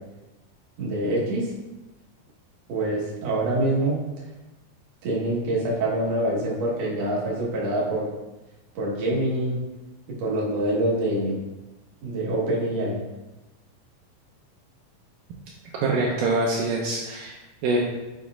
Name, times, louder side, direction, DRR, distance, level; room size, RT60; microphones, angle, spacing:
voice 1, 0.8-1.5 2.7-4.0 5.0-8.1 8.8-9.6 10.1-11.4 12.0-13.0, right 1 dB, 55° right, -5 dB, 2.2 m, -25 dB
voice 2, 15.8-17.4 17.6-17.8, right 2 dB, 80° right, -2 dB, 2.2 m, -24 dB
7.0 x 5.9 x 2.4 m, 1.1 s
omnidirectional pair, 4.2 m